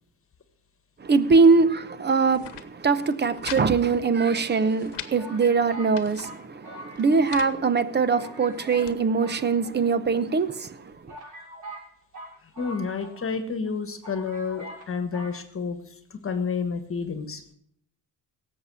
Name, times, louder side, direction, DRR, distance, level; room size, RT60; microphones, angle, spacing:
voice 1, 1.0-11.1, right 4 dB, 25° right, 0.8 m, -22 dB
sound 1, 2.2-2.7 3.0-3.7 3.9-4.0 4.4-5.1 5.7-6.3 7.0-7.6 8.2-9.0, left 13 dB, 80° left, 1.2 m, -41 dB
sound 2, 3.7-4.5 5.2-7.5 7.7-7.8 8.1-8.9 9.2-10.2 10.7-10.8 11.1-13.4 13.7-13.8 14.0-14.9 15.1-15.4, right 1 dB, 50° right, 6.7 m, -43 dB
voice 2, 12.6-17.4, left 5 dB, 35° left, 1.5 m, -30 dB
17.0 x 7.7 x 6.2 m
cardioid pair, 125°, 40 cm